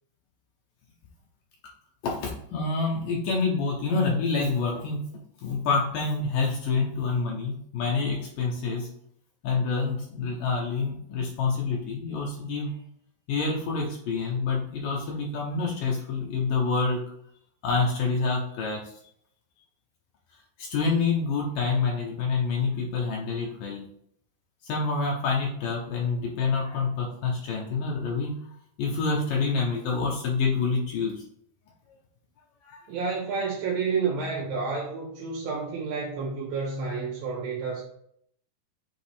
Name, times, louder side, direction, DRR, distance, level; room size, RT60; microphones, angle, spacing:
voice 1, 2.0-5.0 5.4-8.9 9.4-12.7 13.3-17.0 17.6-18.9 20.6-23.8 24.6-28.4 28.8-31.2 32.6-32.8, left 4 dB, 70° left, -2 dB, 2.3 m, -27 dB
voice 2, 32.9-37.8, right 5 dB, 70° right, -4 dB, 2.8 m, -30 dB
8.1 x 3.8 x 3.5 m, 0.68 s
omnidirectional pair, 4.4 m